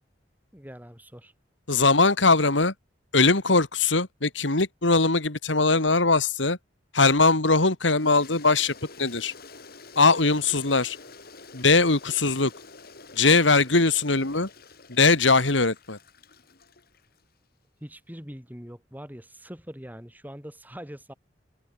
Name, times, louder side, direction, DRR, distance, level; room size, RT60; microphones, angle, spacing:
voice 1, 0.5-1.3 17.8-21.1, equal, 10° right, 6.8 m, -42 dB
voice 2, 1.7-2.7 3.1-6.6 6.9-9.3 10.0-11.0 11.5-12.5 13.2-14.5 14.9-16.0, left 3 dB, 80° left, 2.6 m, -21 dB
Toilet flush, 7.9-17.2, left 4 dB, 55° left, 5.6 m, -48 dB
open air
head